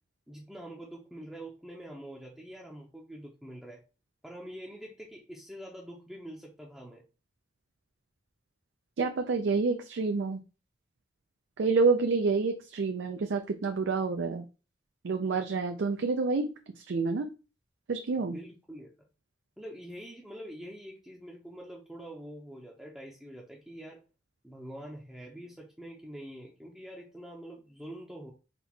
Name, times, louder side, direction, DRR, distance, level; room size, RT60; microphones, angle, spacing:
voice 1, 0.3-3.8 4.2-7.0 18.2-18.9 19.6-24.0 24.4-28.3, right 1 dB, ahead, 0.5 m, -45 dB
voice 2, 9.0-10.4 11.6-14.4 15.0-17.3 17.9-18.4, right 4 dB, 85° right, 0.4 m, -28 dB
4.1 x 2.3 x 4.3 m
head